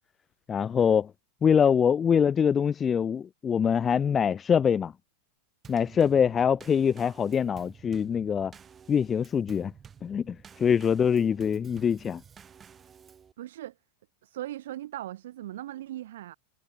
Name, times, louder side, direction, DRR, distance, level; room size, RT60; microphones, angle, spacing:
voice 1, 0.5-1.1 1.4-4.9 5.7-8.5 8.9-9.7 10.0-12.2, left 7 dB, 20° left, 0.5 m, -24 dB
Drum kit / Snare drum / Bass drum, 5.6-13.3, right 7 dB, 20° right, 1.9 m, -51 dB
voice 2, 13.4-13.7 14.2-16.4, right 13 dB, 55° right, 0.5 m, -38 dB
figure-of-eight pair, 90°, 0 cm